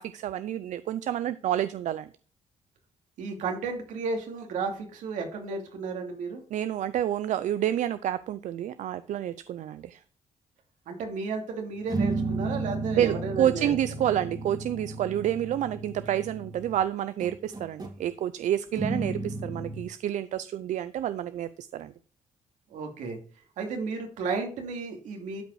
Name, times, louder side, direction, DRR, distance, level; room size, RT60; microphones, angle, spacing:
voice 1, 0.0-2.1 6.5-10.0 12.9-21.9, right 11 dB, 75° right, 14 dB, 0.5 m, -29 dB
voice 2, 3.2-6.4 10.9-13.7 22.7-23.2 23.6-25.4, right 4 dB, 90° right, 3 dB, 2.6 m, -33 dB
sound 1, 11.9-16.8 17.2-18.0 18.7-19.8, right 3 dB, 30° right, 2.2 m, -33 dB
12.5 x 5.3 x 4.8 m, 0.41 s
cardioid pair, 95°, 13 cm